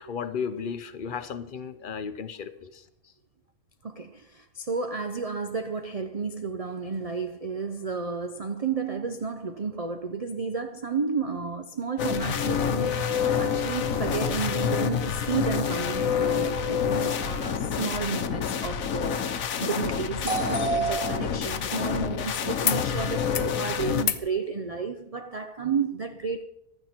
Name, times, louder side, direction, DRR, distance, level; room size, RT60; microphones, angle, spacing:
voice 1, 0.0-2.8, left 6 dB, 45° left, 0.7 m, -34 dB
voice 2, 3.8-19.2 19.5-26.4, right 5 dB, 45° right, 0.4 m, -31 dB
sound 1, 12.0-24.0, left 7 dB, 70° left, 1.3 m, -28 dB
sound 2, 22.6-22.8 23.1-23.6 24.0-24.3 25.6-25.7, left 10 dB, 85° left, 1.3 m, -33 dB
15.0 x 12.0 x 4.4 m
omnidirectional pair, 1.6 m